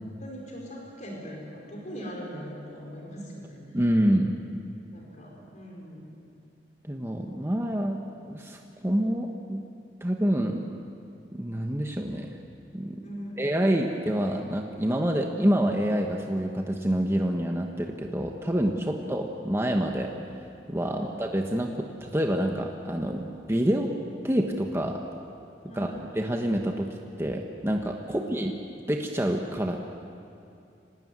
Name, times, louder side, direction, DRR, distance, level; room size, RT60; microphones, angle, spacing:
voice 1, 0.2-3.9 4.9-6.2 13.0-13.6 18.9-19.1 20.9-21.2 25.7-26.0 28.0-28.2, equal, 45° left, -1 dB, 4.9 m, -41 dB
voice 2, 3.7-4.4 6.8-9.6 10.0-10.7 11.3-12.3 12.7-13.0 13.4-20.1 20.7-23.9 24.2-25.0 25.8-25.9 26.1-26.9 27.2-28.5 28.9-29.9, equal, 15° right, 2 dB, 1.2 m, -27 dB
25.0 x 18.5 x 9.4 m, 2.5 s
head